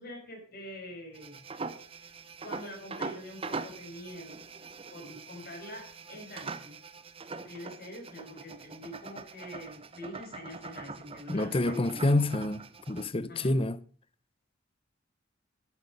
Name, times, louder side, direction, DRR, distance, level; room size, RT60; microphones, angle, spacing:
voice 1, 0.0-1.4 2.0-2.1 2.4-4.4 4.9-5.8 6.1-6.8 7.4-12.3 13.3-13.5, left 1 dB, 50° left, 5.8 m, -45 dB
sound 1, 1.1-13.1, right 4 dB, 30° right, 0.8 m, -43 dB
voice 2, 11.3-13.8, left 1 dB, 30° left, 0.7 m, -28 dB
12.5 x 11.0 x 5.3 m
head